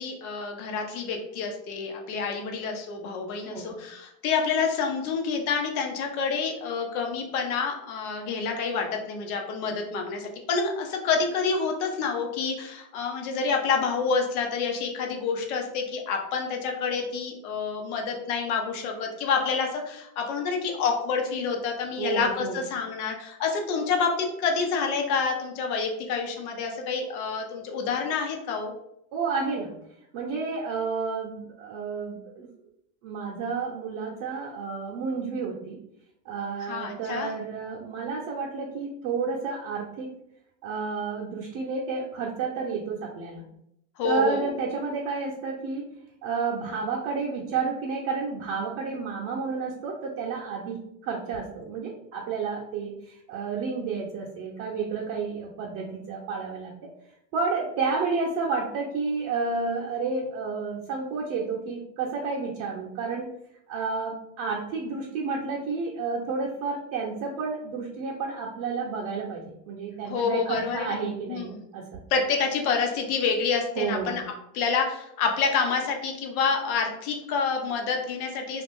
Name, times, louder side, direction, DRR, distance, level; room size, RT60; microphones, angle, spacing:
voice 1, 0.0-28.7 36.6-37.3 44.0-44.5 70.1-71.0 71.3-71.6 72.1-74.2 74.5-78.6, left 5 dB, 80° left, 3 dB, 0.8 m, -28 dB
voice 2, 22.0-22.6 29.1-29.7 30.1-32.5 33.0-35.8 36.3-40.1 40.6-43.4 44.0-45.9 46.2-50.8 51.0-56.7 57.3-63.3 63.7-71.9 73.8-74.2, right 4 dB, 55° right, -3 dB, 0.7 m, -31 dB
2.5 x 2.4 x 3.5 m, 0.78 s
supercardioid pair, 125°, 43 cm